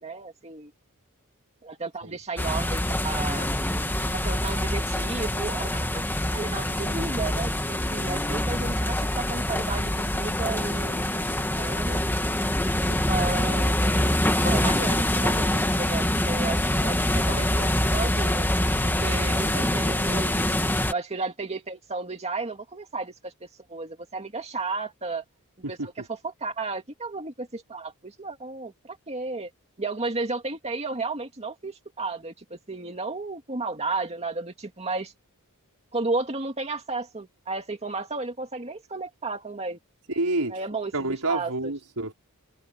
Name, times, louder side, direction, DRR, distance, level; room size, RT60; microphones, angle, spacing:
voice 1, 0.0-0.7 1.6-3.5 4.1-6.1 6.3-11.3 11.6-12.0 12.9-14.2 14.4-18.5 18.8-20.6 20.9-25.2 25.7-29.5 29.8-35.1 35.9-39.8 40.5-41.7, right 3 dB, 30° right, 2.3 m, -33 dB
sound 1, 2.4-20.9, left 1 dB, 10° left, 2.2 m, -25 dB
voice 2, 40.1-40.6 40.9-42.1, right 2 dB, 85° right, 4.8 m, -27 dB
head